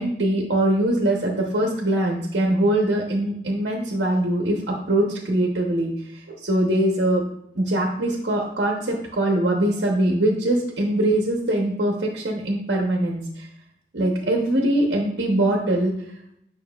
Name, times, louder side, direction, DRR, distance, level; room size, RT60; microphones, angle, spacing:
voice 1, 0.0-7.2 7.5-13.5 13.9-15.9, right 1 dB, 70° right, 0 dB, 0.9 m, -22 dB
6.8 x 5.8 x 2.3 m, 0.73 s
head